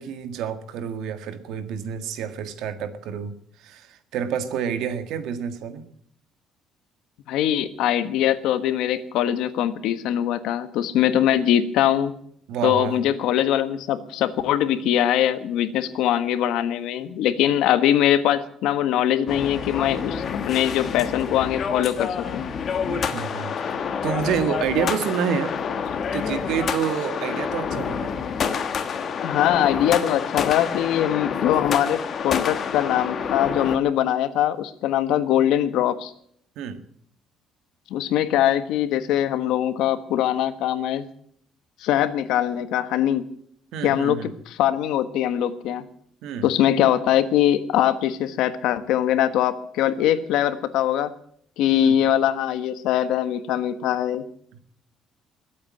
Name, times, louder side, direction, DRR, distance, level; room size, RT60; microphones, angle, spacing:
voice 1, 0.0-5.9 12.5-13.0 22.9-23.7 24.0-28.1 36.6-36.8 43.7-44.3 46.2-46.5 51.7-52.0 54.5-54.6, right 7 dB, 75° right, 10 dB, 1.8 m, -29 dB
voice 2, 7.3-12.1 12.6-22.4 29.2-36.1 37.9-41.1 41.8-43.2 43.8-44.2 44.5-45.9 46.4-51.1 51.6-54.2, left 11 dB, 85° left, 11 dB, 1.4 m, -22 dB
sound 1, 19.3-33.8, left 6 dB, 35° left, 1.4 m, -28 dB
21.5 x 8.6 x 7.6 m, 0.65 s
cardioid pair, 170°, 0 cm